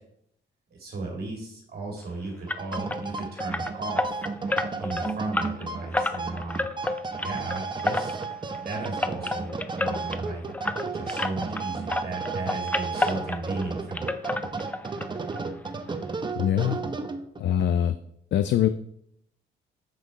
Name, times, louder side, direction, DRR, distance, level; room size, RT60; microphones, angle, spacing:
voice 1, 0.7-4.2 4.8-6.7 7.2-8.2 8.5-10.4 10.9-14.1, right 2 dB, 50° right, -1 dB, 2.2 m, -35 dB
sound 1, 2.5-11.6 11.9-13.7 13.9-15.1 15.3-15.4 15.9-16.0 16.3-16.4, left 2 dB, 10° left, 0.5 m, -30 dB
sound 2, 2.5-17.4, right 4 dB, 25° right, 0.8 m, -33 dB
voice 2, 16.4-16.8 17.4-18.0 18.3-18.7, left 10 dB, 65° left, 11 dB, 0.5 m, -23 dB
7.4 x 6.1 x 4.1 m, 0.73 s
cardioid pair, 90°, 20 cm